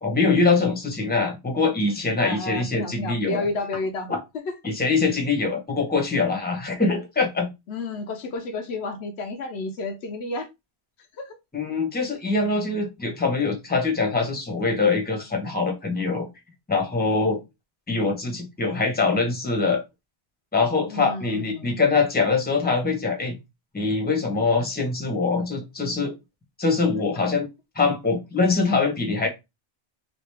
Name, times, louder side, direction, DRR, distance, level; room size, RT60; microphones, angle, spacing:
voice 1, 0.0-3.4 4.1-4.2 4.6-7.5 11.5-16.3 16.7-17.4 17.9-19.8 20.5-23.4 23.7-26.1 26.6-27.5 27.7-29.3, left 4 dB, 10° left, 0.8 m, -23 dB
voice 2, 2.2-4.5 7.7-10.5 11.2-11.4 20.9-21.8, left 2 dB, 75° left, 0.9 m, -31 dB
3.0 x 2.4 x 3.3 m
omnidirectional pair, 1.1 m